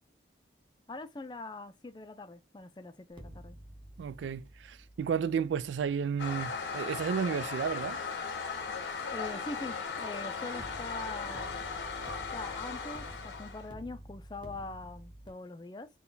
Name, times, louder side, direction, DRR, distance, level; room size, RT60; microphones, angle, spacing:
voice 1, 0.9-3.6 9.1-11.6 12.3-15.9, left 2 dB, 25° left, 0.4 m, -43 dB
sound 1, 3.1-8.2 10.6-15.3, right 1 dB, 25° right, 0.8 m, -51 dB
voice 2, 4.0-8.0, right 7 dB, 80° right, 0.3 m, -32 dB
Toilet flush, 6.2-13.7, left 5 dB, 80° left, 0.9 m, -37 dB
3.8 x 2.3 x 3.9 m
head